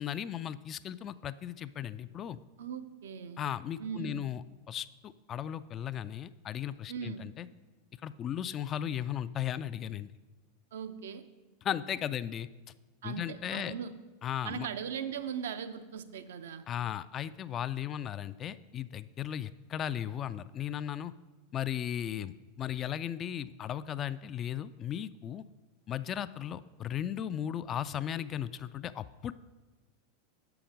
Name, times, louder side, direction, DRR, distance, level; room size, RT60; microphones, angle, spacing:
voice 1, 0.0-2.4 3.4-7.5 8.0-10.1 11.6-12.5 13.0-13.7 14.2-14.7 16.7-21.1 21.5-25.4 25.9-29.3, left 10 dB, 35° left, 15 dB, 0.3 m, -36 dB
voice 2, 2.6-3.4 3.8-4.2 6.9-7.2 10.7-11.2 13.0-14.0 14.4-16.6, right 7 dB, 75° right, 11 dB, 0.5 m, -39 dB
7.1 x 5.8 x 5.1 m, 1.2 s
hypercardioid pair, 95°, 0 cm